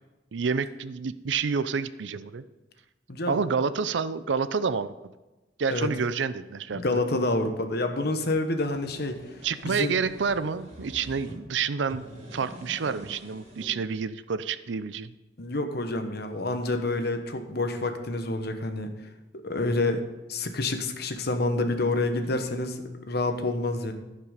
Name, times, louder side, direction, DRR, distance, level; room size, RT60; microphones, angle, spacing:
voice 1, 0.3-2.4 3.3-4.9 5.6-6.8 9.4-15.1, right 5 dB, 80° right, 14 dB, 0.5 m, -28 dB
voice 2, 3.1-3.4 5.7-5.9 6.7-9.2 9.6-10.0 15.4-18.9 19.3-20.0 20.3-23.9, left 2 dB, 60° left, 6 dB, 1.2 m, -28 dB
sound 1, 8.4-11.4 11.8-13.7, right 1 dB, 40° right, 4.0 m, -46 dB
15.0 x 5.7 x 5.0 m, 1.1 s
head